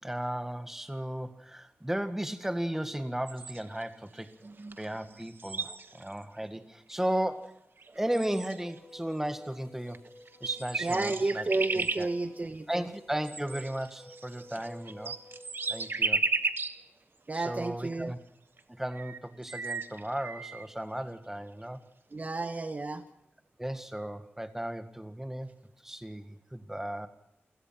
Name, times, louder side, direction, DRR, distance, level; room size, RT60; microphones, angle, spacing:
voice 1, 0.0-4.4 4.8-7.6 8.0-10.0 10.4-11.5 11.7-12.1 12.7-15.2 15.7-16.2 17.3-18.2 18.7-21.8 23.6-25.5 25.8-27.1, right 1 dB, 10° right, 8 dB, 1.7 m, -35 dB
sound 1, 3.3-3.8 4.7-4.9 5.1-6.2 6.9-7.0 7.8-8.8 9.9-10.0 10.3-12.1 13.2-16.8 17.3-17.4 18.6-18.7 18.9-20.6, right 4 dB, 60° right, 1.4 m, -34 dB
voice 2, 4.4-5.0 7.9-8.0 10.8-12.9 17.3-18.1 22.1-23.0, right 2 dB, 35° right, 8 dB, 1.3 m, -32 dB
sound 2, 8.2-15.9, equal, 15° left, 6.6 m, -52 dB
29.0 x 16.5 x 5.9 m, 0.81 s
wide cardioid pair, 95°, 4 cm